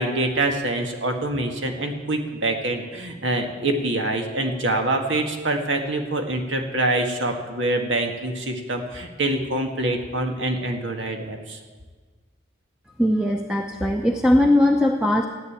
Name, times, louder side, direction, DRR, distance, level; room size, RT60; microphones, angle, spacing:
voice 1, 0.0-11.6, right 2 dB, 80° right, 3 dB, 1.9 m, -25 dB
voice 2, 13.0-15.3, left 1 dB, 5° right, 2 dB, 0.7 m, -19 dB
15.0 x 9.4 x 8.6 m, 1.4 s
head